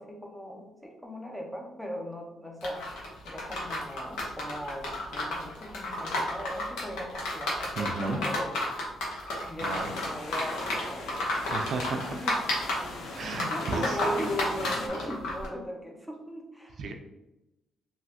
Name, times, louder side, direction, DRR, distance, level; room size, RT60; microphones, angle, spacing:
voice 1, 0.0-2.8 3.2-8.7 9.5-11.4 11.9-12.4 13.0-16.8, equal, 5° left, 2 dB, 0.6 m, -38 dB
sound 1, 2.6-15.5, left 1 dB, 90° left, 0.8 m, -32 dB
voice 2, 7.8-8.2 9.6-9.9 11.5-12.2 13.2-13.8 16.8-16.9, right 3 dB, 65° right, 5 dB, 0.4 m, -33 dB
sound 2, 9.6-14.9, left 2 dB, 60° left, 0.6 m, -41 dB
3.1 x 2.5 x 2.7 m, 0.96 s
cardioid pair, 90°, 0 cm